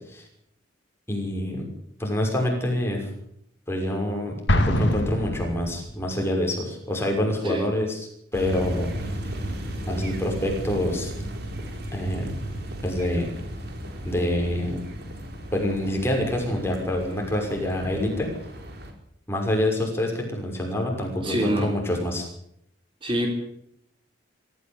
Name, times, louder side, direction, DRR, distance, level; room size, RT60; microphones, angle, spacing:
voice 1, 1.1-1.7 2.0-3.1 3.7-8.0 8.3-9.0 9.9-11.1 11.9-12.3 12.8-13.3 14.0-14.8 15.5-18.3 19.3-22.3, left 1 dB, 15° left, 1 dB, 6.0 m, -26 dB
Explosion, 4.5-6.2, left 1 dB, 65° left, 2.2 m, -24 dB
sound 1, 8.3-18.9, right 1 dB, 55° right, 4.4 m, -35 dB
voice 2, 21.2-21.8 23.0-23.3, equal, 25° right, 2 dB, 3.5 m, -25 dB
24.0 x 14.5 x 8.3 m, 0.74 s
head